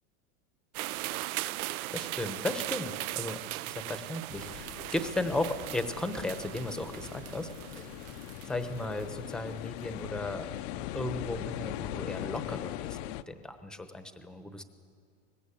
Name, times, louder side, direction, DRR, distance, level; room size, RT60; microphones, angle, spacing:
sound 1, 0.7-9.3, right 17 dB, 75° right, 0.6 m, -39 dB
voice 1, 1.9-7.5 7.8-7.9 8.5-10.5 10.9-14.6, left 2 dB, ahead, 8 dB, 0.8 m, -35 dB
sound 2, 4.3-13.2, left 14 dB, 50° left, 0.6 m, -40 dB
22.5 x 20.0 x 8.6 m, 2.3 s
supercardioid pair, 155°, 43 cm